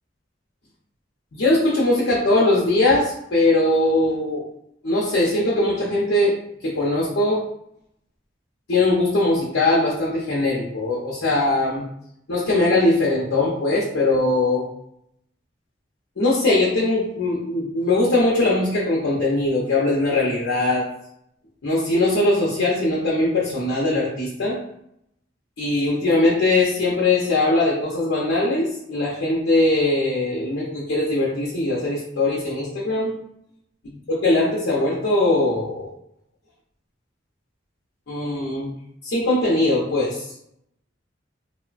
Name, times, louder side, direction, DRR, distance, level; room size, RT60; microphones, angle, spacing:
voice 1, 1.3-4.5 4.8-6.3 6.6-7.4 8.7-11.9 12.3-14.6 16.2-20.8 21.6-24.6 25.6-33.1 34.2-35.9 38.1-38.7 39.0-40.1, left 2 dB, 85° left, -5 dB, 0.6 m, -20 dB
3.0 x 2.1 x 2.4 m, 0.75 s
head